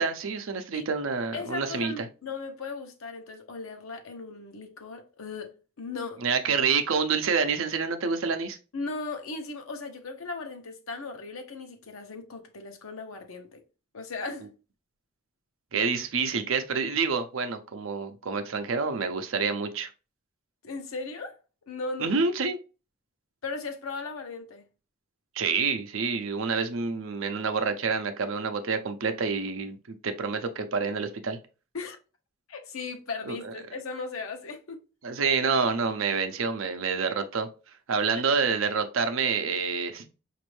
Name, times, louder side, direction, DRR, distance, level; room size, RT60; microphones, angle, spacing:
voice 1, 0.0-2.1 6.2-8.6 15.7-19.9 22.0-22.6 25.4-31.4 33.3-33.5 35.0-37.5 37.9-40.1, right 5 dB, 75° right, 0.6 m, -28 dB
voice 2, 1.3-6.2 8.7-13.6 13.9-14.5 20.6-21.4 21.7-22.2 23.4-24.6 31.7-32.0 32.5-34.8, left 3 dB, 90° left, 0.8 m, -37 dB
5.1 x 2.6 x 3.1 m
head